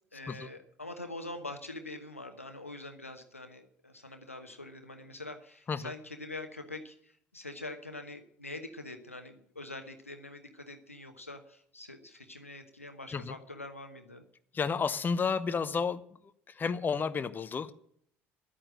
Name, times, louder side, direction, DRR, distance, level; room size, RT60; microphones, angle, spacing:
voice 1, 0.1-14.2, left 2 dB, 85° left, 7 dB, 1.1 m, -44 dB
voice 2, 14.5-16.0 16.5-17.7, left 5 dB, 25° left, 12 dB, 0.8 m, -31 dB
11.5 x 8.9 x 7.7 m, 0.66 s
figure-of-eight pair, 60°, 7 cm